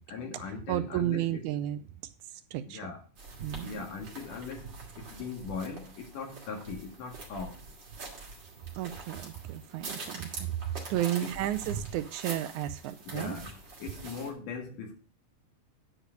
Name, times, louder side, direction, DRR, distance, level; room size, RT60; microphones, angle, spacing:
voice 1, 0.1-1.4 2.6-3.0 3.6-7.6 11.2-11.5 13.0-14.9, left 5 dB, 70° left, 4 dB, 3.3 m, -40 dB
voice 2, 0.7-1.8 2.5-2.8 3.4-3.7 8.8-10.5 10.9-13.4, right 13 dB, 80° right, 10 dB, 1.8 m, -32 dB
sound 1, 3.2-14.3, right 4 dB, 35° right, 2.8 m, -44 dB
10.0 x 4.9 x 6.3 m, 0.36 s
omnidirectional pair, 3.8 m